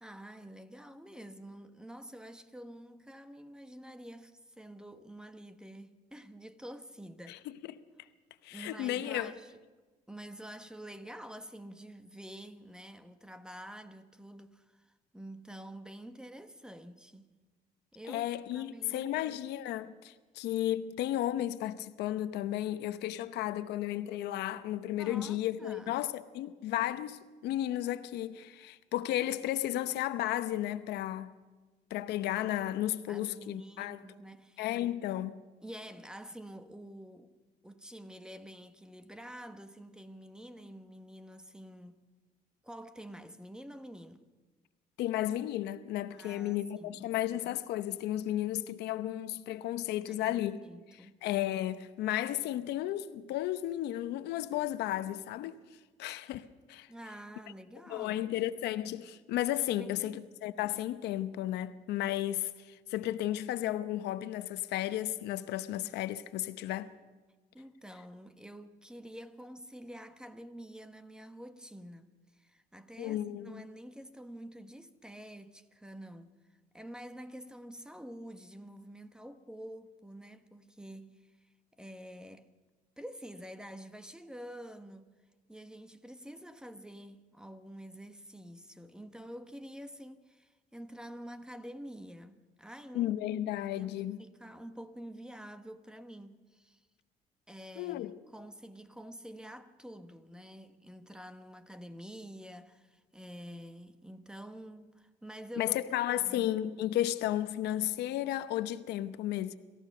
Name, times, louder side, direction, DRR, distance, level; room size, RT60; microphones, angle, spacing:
voice 1, 0.0-7.4 8.5-9.5 10.1-17.3 17.9-19.1 25.0-26.0 33.1-34.7 35.6-37.3 37.6-42.0 42.6-44.2 46.1-47.1 50.1-51.2 56.9-58.2 59.7-60.2 67.5-76.3 76.7-82.5 83.0-85.1 85.5-96.8 97.5-105.8 106.2-106.5, equal, 5° right, 1.2 m, -48 dB
voice 2, 8.4-9.3 18.1-31.3 31.9-34.0 34.6-35.4 45.0-50.6 51.2-55.6 56.0-56.9 57.9-66.9 73.0-73.6 92.9-94.2 97.8-98.1 105.6-109.6, left 13 dB, 80° left, 0.9 m, -33 dB
26.5 x 14.5 x 6.7 m
cardioid pair, 110°, 17 cm